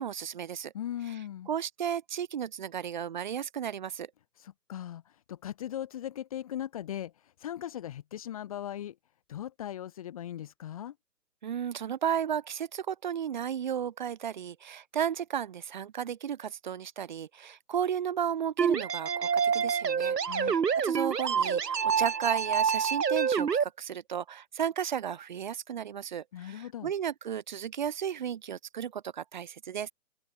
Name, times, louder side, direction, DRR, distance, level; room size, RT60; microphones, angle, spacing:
voice 1, 0.0-0.7 1.5-4.1 11.4-29.9, right 8 dB, 30° right, 6.0 m, -34 dB
voice 2, 0.7-1.5 4.4-9.0 9.3-10.9 20.2-20.6 26.3-26.9, left 11 dB, 20° left, 5.1 m, -39 dB
sound 1, 18.6-23.6, right 6 dB, 80° right, 1.4 m, -27 dB
open air
hypercardioid pair, 175°, 47 cm